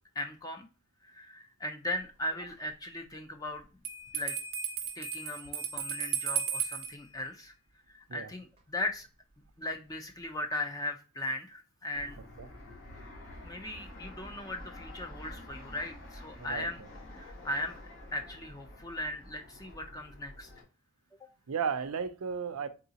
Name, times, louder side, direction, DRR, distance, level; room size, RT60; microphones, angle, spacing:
voice 1, 0.2-0.7 1.0-3.7 4.1-4.3 5.0-7.6 7.9-9.1 9.6-12.2 13.4-16.8 17.1-17.8 18.1-20.5, left 1 dB, 15° left, 0.5 m, -38 dB
Bell, 3.8-6.9, right 8 dB, 25° right, 0.6 m, -34 dB
Fixed-wing aircraft airplane, 11.9-20.6, left 1 dB, 65° left, 2.1 m, -48 dB
voice 2, 16.4-16.9 21.5-22.7, right 6 dB, 80° right, 0.5 m, -34 dB
3.8 x 3.8 x 2.7 m
head